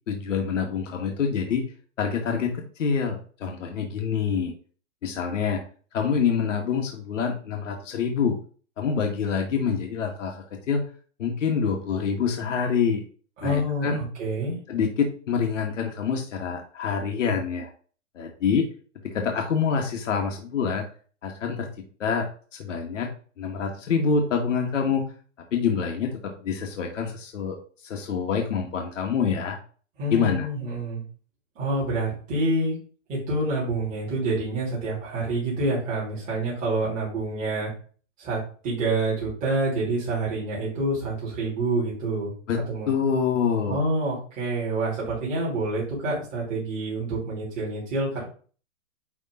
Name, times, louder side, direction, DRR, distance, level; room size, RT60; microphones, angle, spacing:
voice 1, 0.1-1.6 2.0-4.5 5.0-5.6 5.9-8.4 8.8-10.8 11.2-13.0 13.4-14.0 14.7-17.7 18.2-18.7 19.0-20.9 21.2-21.7 22.0-22.3 22.5-23.1 23.4-25.0 25.5-27.6 27.8-29.6 30.1-30.5 42.5-42.6 42.9-43.8, left 6 dB, 80° left, 2 dB, 1.7 m, -26 dB
voice 2, 13.4-14.6 30.0-31.0 31.6-32.8 33.1-37.7 38.2-42.3 42.7-43.0 43.7-48.2, right 2 dB, 20° right, -7 dB, 3.5 m, -27 dB
10.0 x 3.7 x 3.8 m, 0.41 s
hypercardioid pair, 170°, 37 cm